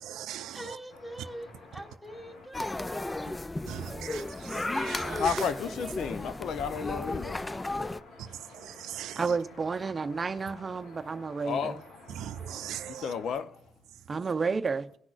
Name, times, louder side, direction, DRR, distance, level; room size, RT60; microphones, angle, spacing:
voice 1, 0.0-0.8 3.7-5.5 8.2-9.4 12.1-13.1, right 11 dB, 85° right, 0.4 m, -40 dB
voice 2, 0.5-3.4, equal, ahead, 1.3 m, -44 dB
sound 1, 0.9-13.3, left 2 dB, 90° left, 2.7 m, -52 dB
sound 2, 2.5-8.0, left 2 dB, 15° left, 0.3 m, -34 dB
voice 3, 5.2-7.4 11.4-11.8 12.9-13.5, left 6 dB, 70° left, 0.7 m, -32 dB
voice 4, 9.2-11.8 14.1-14.9, right 4 dB, 35° right, 0.7 m, -31 dB
18.0 x 6.0 x 2.5 m
cardioid pair, 90°, 0 cm